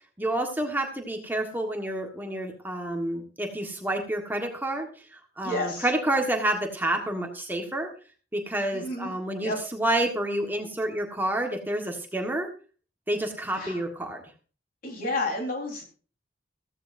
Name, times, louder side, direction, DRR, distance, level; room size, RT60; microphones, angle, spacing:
voice 1, 0.2-7.9 8.3-12.5 13.1-14.2, right 1 dB, 10° right, 2 dB, 1.5 m, -29 dB
voice 2, 5.4-5.9 8.7-9.1 9.4-9.6 13.6-13.8 14.8-15.8, left 2 dB, 55° left, 1 dB, 4.2 m, -31 dB
15.0 x 15.0 x 2.6 m, 0.38 s
head